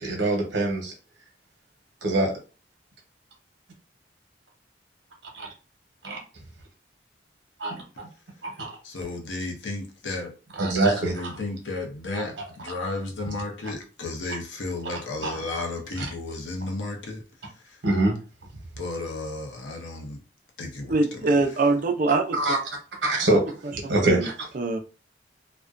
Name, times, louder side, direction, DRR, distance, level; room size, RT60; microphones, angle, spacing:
voice 1, 0.0-0.9 2.0-2.3 5.3-5.5 6.0-6.2 7.6-8.1 8.4-8.8 10.6-11.2 15.2-15.4 17.8-18.2 22.4-22.6 23.0-23.5 23.9-24.3, right 2 dB, 75° right, 1 dB, 0.9 m, -24 dB
voice 2, 8.8-10.3 10.9-17.8 18.8-20.2 20.6-21.4, left 2 dB, 85° left, 2 dB, 0.7 m, -33 dB
voice 3, 20.9-22.4 23.3-23.4 23.8-24.3 24.5-24.8, right 3 dB, 45° right, 5 dB, 0.4 m, -23 dB
2.4 x 2.1 x 2.4 m, 0.34 s
head